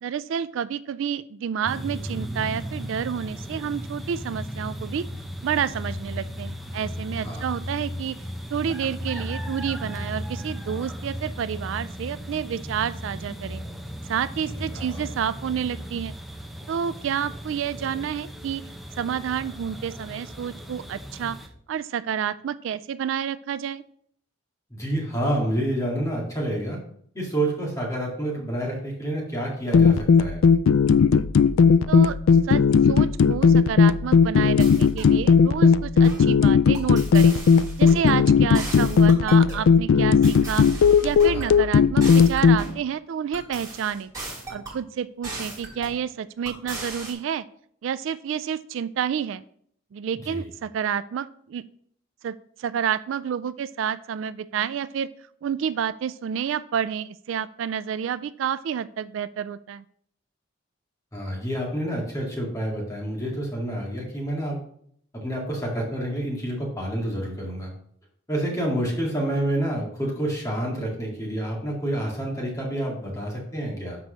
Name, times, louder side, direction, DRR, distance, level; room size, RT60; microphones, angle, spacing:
voice 1, 0.0-5.0 5.4-8.2 8.5-13.6 14.1-16.1 16.7-18.6 19.0-21.4 21.7-23.8 31.9-32.2 32.4-37.3 37.8-40.7 41.0-44.1 44.5-47.4 47.8-49.4 49.9-51.6 52.2-52.3 52.6-55.1 55.4-59.8, right 8 dB, 70° right, 16 dB, 0.3 m, -29 dB
sound 1, 1.7-21.5, equal, ahead, 0.7 m, -36 dB
voice 2, 14.5-15.0 24.7-26.8 27.1-30.4 41.3-41.5 50.2-50.5 61.1-64.6 65.1-67.7 68.3-74.0, right 1 dB, 15° left, -2 dB, 2.2 m, -28 dB
sound 2, 29.7-42.6, left 6 dB, 75° left, 0.3 m, -17 dB
sound 3, 34.6-35.2 36.0-36.3 36.7-38.1 38.5-39.7 40.2-41.5 42.0-42.8 43.3-44.8 45.2-46.0 46.5-47.1, right 2 dB, 15° right, 3.2 m, -37 dB
6.0 x 4.7 x 6.4 m, 0.64 s
head